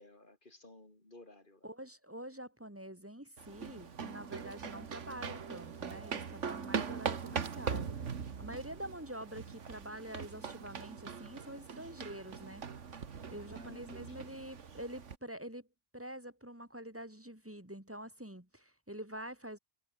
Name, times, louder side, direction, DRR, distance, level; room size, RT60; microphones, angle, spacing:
voice 1, 0.0-1.7 13.3-14.3, left 2 dB, 45° left, 4.2 m, -57 dB
voice 2, 1.6-12.7 13.3-15.7 15.9-19.6, right 1 dB, 10° right, 2.5 m, -46 dB
sound 1, 3.4-15.2, right 6 dB, 85° right, 1.8 m, -41 dB
omnidirectional pair, 1.2 m